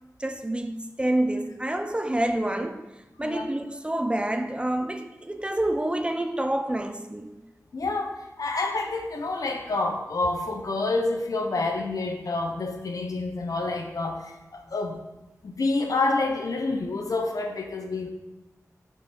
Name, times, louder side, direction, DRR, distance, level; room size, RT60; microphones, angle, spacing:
voice 1, 0.2-2.9 3.2-7.3, right 1 dB, 15° right, 0.5 m, -28 dB
voice 2, 7.7-15.0 15.4-18.1, left 3 dB, 70° left, 0.9 m, -28 dB
6.2 x 5.8 x 4.3 m
wide cardioid pair, 90°, 6 cm